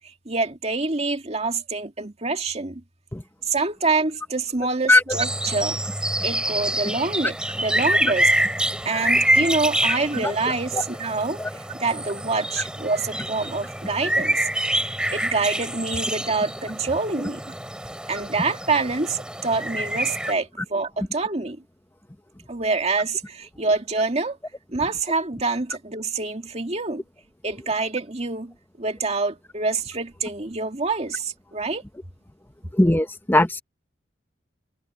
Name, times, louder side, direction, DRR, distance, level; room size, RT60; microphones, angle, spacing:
voice 1, 0.3-2.8 3.4-5.8 6.2-8.3 8.8-14.4 15.1-17.4 18.1-21.6 22.5-24.4 24.7-27.0 27.4-31.8, right 3 dB, 35° right, 2.2 m, -26 dB
sound 1, 5.1-20.3, right 1 dB, 5° right, 3.5 m, -26 dB
voice 2, 9.9-10.3 10.7-10.8 11.4-11.5 32.7-33.6, left 1 dB, 10° left, 1.0 m, -20 dB
head